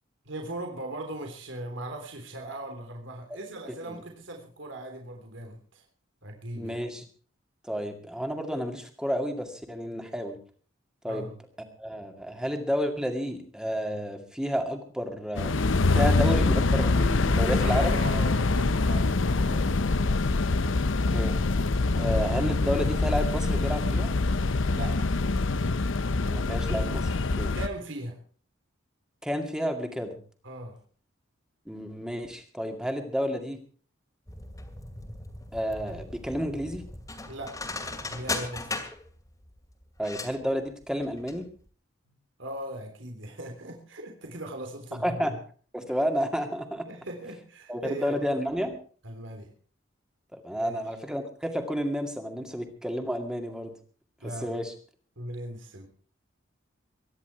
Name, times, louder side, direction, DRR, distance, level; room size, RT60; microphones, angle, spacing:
voice 1, 0.3-5.8 6.2-6.8 11.1-11.3 17.6-19.8 24.7-25.1 27.6-28.2 30.4-30.8 37.3-37.7 38.1-38.7 42.1-42.2 42.4-45.4 46.9-48.2 49.0-49.5 50.5-50.8 54.2-54.6 55.2-55.9, right 1 dB, 70° right, 3 dB, 3.5 m, -39 dB
voice 2, 6.6-7.0 7.6-10.4 11.0-11.3 11.8-15.5 15.9-18.0 21.1-21.4 21.9-24.1 26.2-27.5 29.2-30.2 31.7-33.6 35.5-36.8 40.0-41.4 45.0-45.3 45.7-46.9 47.7-48.8 50.3-53.7 54.2-54.7, equal, 5° right, 5 dB, 2.2 m, -31 dB
sound 1, 15.4-27.7, left 3 dB, 75° left, 0.8 m, -25 dB
sound 2, 34.3-41.4 41.7-41.8, left 2 dB, 15° left, 2.4 m, -37 dB
23.5 x 10.5 x 4.8 m, 0.42 s
head